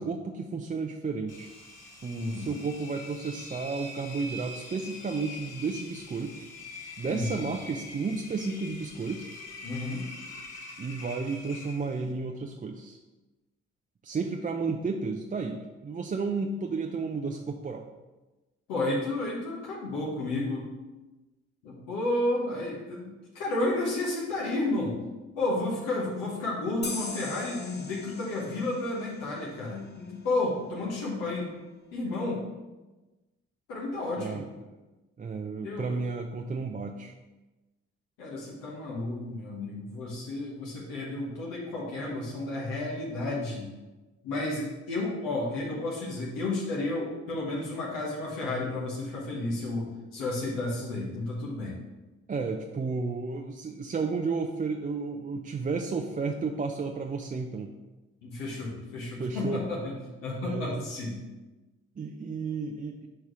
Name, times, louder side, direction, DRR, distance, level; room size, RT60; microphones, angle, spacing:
voice 1, 0.0-1.5 2.0-6.3 7.0-9.3 10.8-13.0 14.0-17.9 34.2-34.5 35.2-37.1 52.3-57.7 59.2-59.6 60.4-60.8 62.0-63.1, right 4 dB, 25° right, 2 dB, 0.5 m, -32 dB
Engine, 1.3-12.1, left 2 dB, 45° left, 1.6 m, -44 dB
voice 2, 7.1-7.4 9.6-10.0 18.7-20.7 21.6-25.0 25.3-31.5 31.9-32.4 33.7-34.5 35.6-36.0 38.2-43.7 44.2-51.8 58.2-61.2, left 2 dB, 80° left, -5 dB, 1.3 m, -32 dB
sound 1, 26.8-30.2, left 3 dB, 30° left, 1.0 m, -41 dB
4.6 x 4.4 x 4.8 m, 1.1 s
hypercardioid pair, 40°, 33 cm